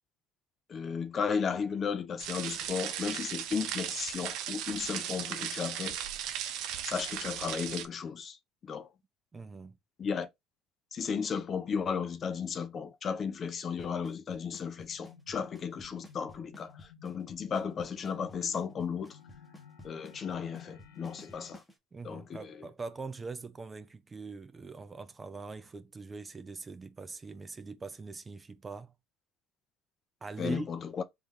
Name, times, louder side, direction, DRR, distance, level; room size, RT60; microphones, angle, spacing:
voice 1, 0.7-6.0 6.8-8.4 8.6-8.9 10.0-10.3 10.9-19.2 19.8-21.6 22.0-22.7 30.4-31.0, left 6 dB, 40° left, 0.6 m, -34 dB
sound 1, 2.2-7.9, right 10 dB, 65° right, 0.6 m, -37 dB
voice 2, 9.3-9.8 21.9-28.9 30.2-30.7, right 4 dB, 25° right, 0.6 m, -42 dB
Drum kit / Snare drum / Bass drum, 13.8-21.7, equal, 5° left, 1.1 m, -52 dB
sound 2, 14.7-21.5, left 8 dB, 80° left, 0.8 m, -55 dB
3.5 x 2.7 x 3.6 m
hypercardioid pair, 80°, 0 cm